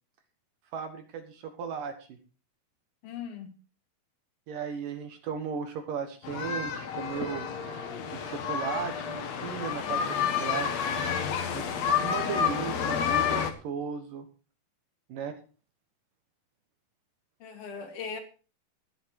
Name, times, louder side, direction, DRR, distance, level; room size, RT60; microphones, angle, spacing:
voice 1, 0.7-2.2 4.5-7.5 8.1-10.8 11.5-14.3 15.1-15.3, right 6 dB, 65° right, 6 dB, 2.4 m, -36 dB
voice 2, 3.0-3.5 17.4-18.2, left 6 dB, 60° left, 6 dB, 3.4 m, -38 dB
sound 1, 6.2-13.5, left 7 dB, 85° left, 1.5 m, -30 dB
13.0 x 10.5 x 4.7 m, 0.35 s
omnidirectional pair, 5.0 m